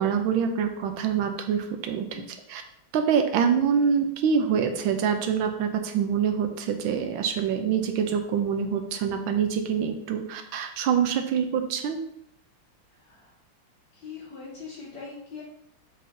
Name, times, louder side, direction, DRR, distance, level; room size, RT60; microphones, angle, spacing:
voice 1, 0.0-2.2 2.5-2.6 2.9-12.0, right 7 dB, 90° right, 6 dB, 1.5 m, -25 dB
voice 2, 13.0-13.3 13.9-15.4, left 5 dB, 75° left, -10 dB, 3.0 m, -42 dB
7.6 x 5.0 x 2.7 m, 0.73 s
omnidirectional pair, 2.2 m